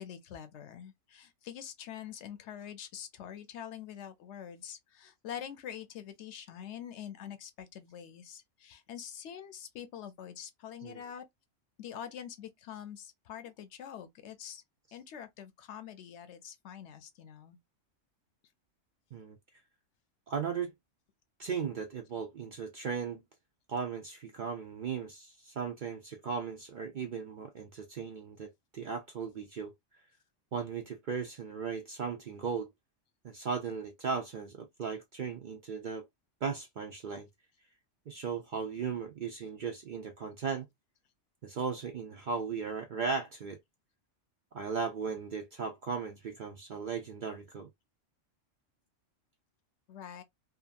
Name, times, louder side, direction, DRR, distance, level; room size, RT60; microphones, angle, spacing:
voice 1, 0.0-11.2 11.8-14.6 14.9-17.6 49.9-50.2, left 9 dB, 75° left, 0.9 m, -45 dB
voice 2, 20.3-20.7 21.4-23.2 23.7-29.7 30.5-32.7 33.2-36.1 36.4-37.3 38.1-40.7 41.4-43.6 44.5-47.7, right 6 dB, 65° right, 0.5 m, -37 dB
2.8 x 2.4 x 2.4 m
omnidirectional pair, 1.3 m